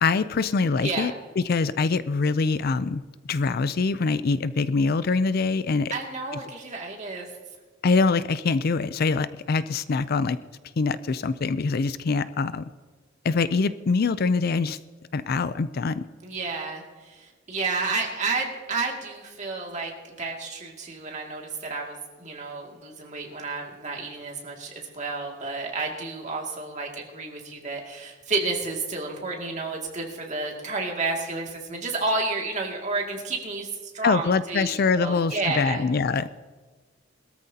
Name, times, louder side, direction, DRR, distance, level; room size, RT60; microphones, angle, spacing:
voice 1, 0.0-3.0 3.3-5.9 7.8-10.4 10.8-12.6 13.2-14.8 15.1-16.0 34.0-36.3, left 4 dB, 50° left, 15 dB, 0.4 m, -24 dB
voice 2, 5.9-7.3 16.2-16.8 17.5-19.9 20.2-33.7 33.9-35.8, right 3 dB, 40° right, 0 dB, 2.3 m, -31 dB
21.5 x 13.5 x 2.8 m, 1.4 s
head